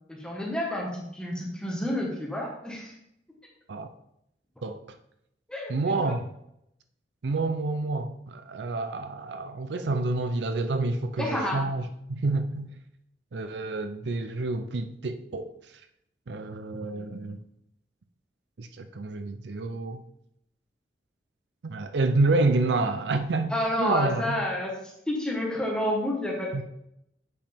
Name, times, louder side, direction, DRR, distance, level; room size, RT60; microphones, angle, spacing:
voice 1, 0.1-2.9 5.5-6.1 11.2-11.6 23.5-26.6, left 1 dB, 5° left, 1.5 m, -30 dB
voice 2, 5.7-6.3 7.2-11.8 12.1-12.7 13.3-15.5 16.3-17.4 18.6-20.0 21.6-24.4 26.5-26.6, right 3 dB, 80° right, 0.5 m, -28 dB
8.0 x 5.1 x 3.5 m
head